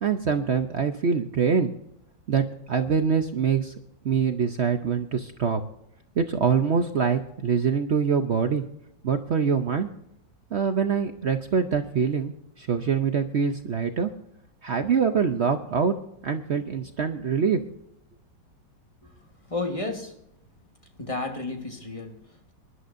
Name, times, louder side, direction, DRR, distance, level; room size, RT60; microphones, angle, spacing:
voice 1, 0.0-1.7 2.3-3.7 4.0-5.6 6.2-8.6 9.0-9.9 10.5-14.1 14.6-16.0 16.2-17.6, right 6 dB, 60° right, 6 dB, 0.7 m, -24 dB
voice 2, 19.0-20.2 21.0-22.5, left 2 dB, 20° left, 4 dB, 1.2 m, -33 dB
24.5 x 11.0 x 2.6 m, 0.79 s
omnidirectional pair, 2.0 m